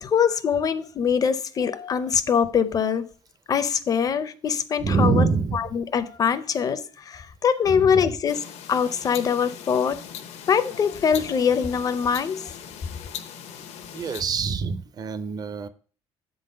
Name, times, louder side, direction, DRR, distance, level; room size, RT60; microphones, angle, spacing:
voice 1, 0.0-3.0 3.5-5.3 5.5-10.0 10.5-12.5, left 7 dB, 35° left, 0.6 m, -23 dB
voice 2, 4.8-5.6 7.7-8.1 13.9-15.7, right 5 dB, 35° right, 0.6 m, -25 dB
sound 1, 8.3-14.2, left 8 dB, 75° left, 0.8 m, -40 dB
8.0 x 3.9 x 6.5 m
cardioid pair, 150°, 11 cm